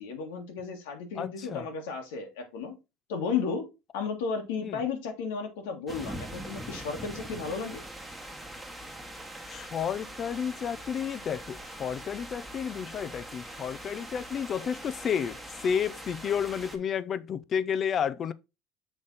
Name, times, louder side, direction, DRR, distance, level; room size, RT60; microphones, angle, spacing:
voice 1, 0.0-2.7 3.1-3.7 3.9-7.8, left 5 dB, 90° left, 1.7 m, -33 dB
voice 2, 1.2-1.6 4.6-4.8 9.5-15.4 15.6-18.3, left 7 dB, 35° left, 0.5 m, -31 dB
sound 1, 5.9-16.8, right 1 dB, 5° right, 1.3 m, -42 dB
7.0 x 3.5 x 4.0 m
supercardioid pair, 120°, 0 cm